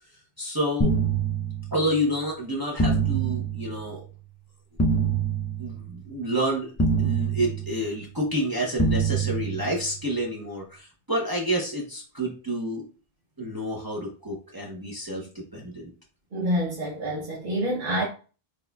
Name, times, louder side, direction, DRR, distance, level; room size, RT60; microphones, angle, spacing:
voice 1, 0.4-0.9 1.7-4.0 5.6-12.9 13.4-15.3 15.5-15.9, equal, 20° right, 0.9 m, -29 dB
sound 1, 0.8-2.0 2.8-4.0 4.8-6.0 6.8-8.0 8.8-10.0, right 4 dB, 25° left, 0.3 m, -25 dB
voice 2, 16.3-18.0, equal, 60° right, 1.0 m, -27 dB
6.2 x 2.6 x 2.3 m
omnidirectional pair, 1.1 m